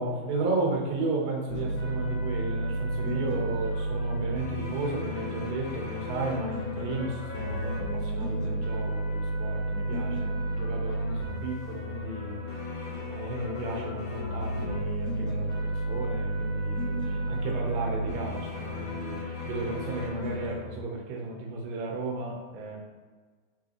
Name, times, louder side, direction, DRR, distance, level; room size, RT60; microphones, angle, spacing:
voice 1, 0.0-12.4 13.1-22.8, right 2 dB, 85° right, -1 dB, 3.9 m, -34 dB
sound 1, 1.5-20.5, equal, 50° left, 1.9 m, -32 dB
11.5 x 4.3 x 3.1 m, 1.4 s
omnidirectional pair, 5.5 m